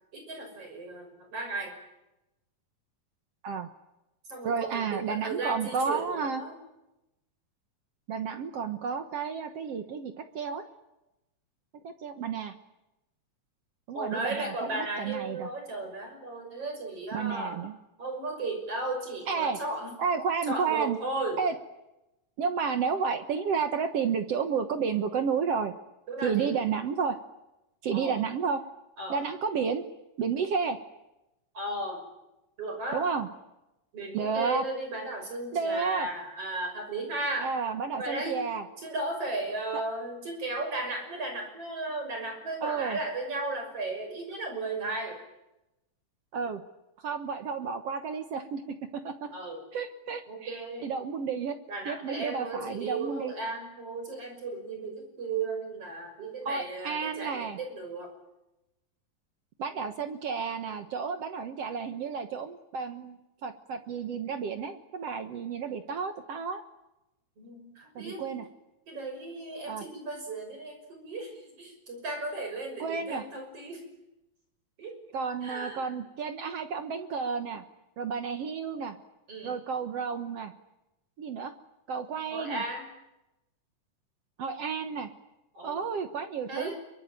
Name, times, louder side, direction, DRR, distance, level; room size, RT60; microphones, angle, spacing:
voice 1, 0.1-1.8 4.3-6.5 13.9-17.6 18.0-19.9 20.5-21.4 26.1-26.5 27.9-28.2 29.0-29.2 31.5-32.0 32.6-33.0 33.9-37.5 38.0-38.4 38.8-45.2 49.3-49.6 50.3-50.9 51.7-58.1 67.4-68.2 68.9-73.8 74.8-75.0 75.4-75.9 79.3-79.5 82.3-82.9 85.5-85.8 86.5-86.8, right 2 dB, 45° right, 4 dB, 7.0 m, -35 dB
voice 2, 4.4-6.4 8.1-10.7 11.8-12.5 13.9-15.5 17.1-17.7 19.3-19.6 20.0-21.0 21.4-21.6 22.4-25.7 26.2-27.2 27.8-28.6 29.1-29.9 30.2-30.8 32.9-33.3 34.1-34.6 35.5-36.1 37.4-38.6 39.7-39.8 42.6-43.0 46.3-46.6 47.0-49.3 49.7-51.6 51.9-53.3 56.5-57.6 59.6-66.6 68.0-68.5 69.7-69.8 72.8-73.3 75.1-77.6 78.0-79.0 79.4-80.5 81.2-81.5 81.9-82.6 84.4-85.1 85.6-86.7, right 6 dB, 60° right, 8 dB, 1.8 m, -31 dB
26.5 x 23.5 x 9.1 m, 0.94 s
omnidirectional pair, 3.9 m